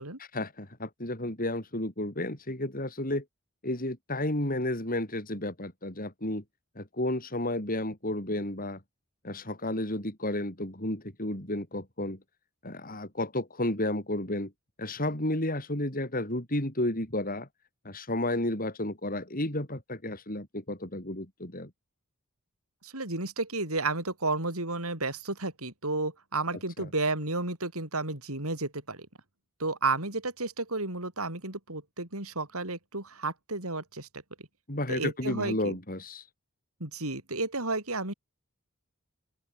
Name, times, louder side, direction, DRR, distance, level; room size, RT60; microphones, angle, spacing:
voice 1, 0.2-3.2 3.6-6.4 6.8-8.8 9.2-12.2 12.6-14.5 14.8-17.5 17.8-21.7 26.8-26.9 34.7-36.3, left 1 dB, 40° left, 6.5 m, -32 dB
voice 2, 22.8-29.1 29.6-34.1 34.9-35.8 36.8-38.1, right 3 dB, 80° right, 7.2 m, -32 dB
open air
head